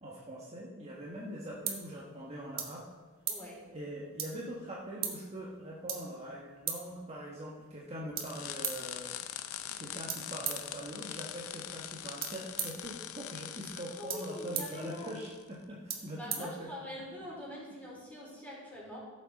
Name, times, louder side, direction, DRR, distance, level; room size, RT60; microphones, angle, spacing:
voice 1, 0.0-2.8 3.7-9.2 9.8-16.7, equal, 30° right, -4 dB, 1.4 m, -43 dB
sound 1, 0.9-17.2, right 7 dB, 45° right, 1.6 m, -43 dB
voice 2, 3.3-3.6 13.9-15.1 16.2-19.0, left 1 dB, 10° left, -5 dB, 3.7 m, -44 dB
sound 2, 8.2-15.4, left 10 dB, 70° left, 0.6 m, -43 dB
15.5 x 7.7 x 4.2 m, 1.4 s
head